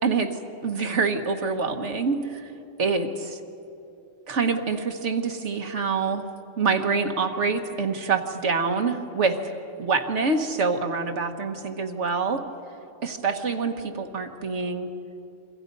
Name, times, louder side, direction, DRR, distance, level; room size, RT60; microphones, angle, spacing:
voice 1, 0.0-2.5 2.8-3.4 4.3-6.2 6.6-9.5 9.8-12.4 13.0-14.9, right 4 dB, 70° right, 6 dB, 1.7 m, -26 dB
28.5 x 23.5 x 5.4 m, 2.7 s
omnidirectional pair, 1.2 m